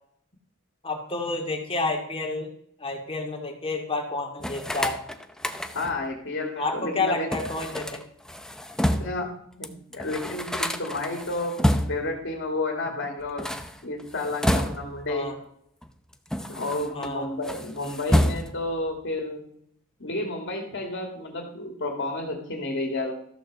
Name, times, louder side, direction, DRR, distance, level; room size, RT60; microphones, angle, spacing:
voice 1, 0.8-2.5 2.8-5.0 6.6-8.0 15.1-15.4 16.9-17.3, left 3 dB, 25° left, 3 dB, 2.3 m, -29 dB
sound 1, 4.4-6.0 7.3-9.3 9.6-9.7 9.9-12.2 13.2-15.1 15.8-17.1 17.4-18.8, equal, 5° left, 0.6 m, -28 dB
voice 2, 5.7-7.3 8.9-9.3 9.6-13.5 13.8-15.3 16.5-19.4 20.0-23.1, left 2 dB, 55° left, 2 dB, 2.4 m, -31 dB
14.0 x 6.4 x 6.6 m, 0.69 s
head